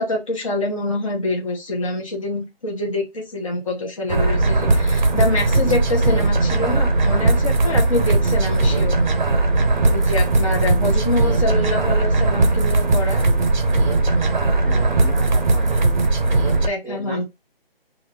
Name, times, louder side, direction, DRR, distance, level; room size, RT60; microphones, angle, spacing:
voice 1, 0.0-9.0 9.8-13.2 16.6-17.2, left 2 dB, 35° left, 1.0 m, -25 dB
sound 1, 4.1-16.7, right 2 dB, 50° right, 0.7 m, -18 dB
voice 2, 14.6-15.8 16.8-17.2, equal, 15° left, 0.5 m, -35 dB
3.1 x 2.6 x 3.1 m
figure-of-eight pair, 165°, 30 cm